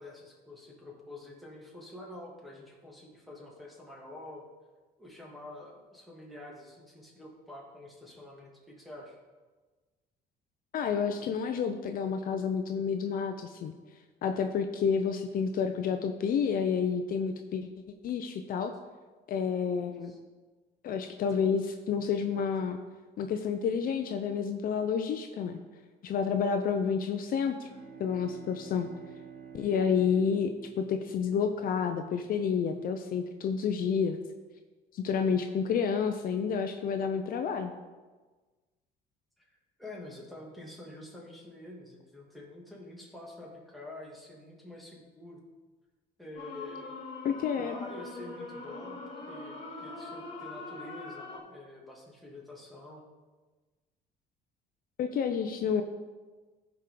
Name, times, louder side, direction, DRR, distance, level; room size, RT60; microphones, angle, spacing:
voice 1, 0.0-4.5 5.0-9.2 20.0-20.2 39.4-45.4 46.2-46.9 47.5-53.1, left 1 dB, ahead, -4 dB, 2.4 m, -47 dB
voice 2, 10.7-13.7 14.2-17.7 18.0-18.7 19.3-20.1 20.8-22.8 23.2-25.6 26.0-27.7 28.0-28.9 29.5-30.5 30.8-34.2 34.9-37.7 47.2-47.8 55.0-55.8, left 6 dB, 60° left, 6 dB, 0.6 m, -29 dB
Bowed string instrument, 27.6-32.2, right 6 dB, 45° right, 2.3 m, -50 dB
sound 1, 46.4-51.4, left 3 dB, 35° left, 3.2 m, -42 dB
14.5 x 5.0 x 3.8 m, 1.3 s
cardioid pair, 110°, 17 cm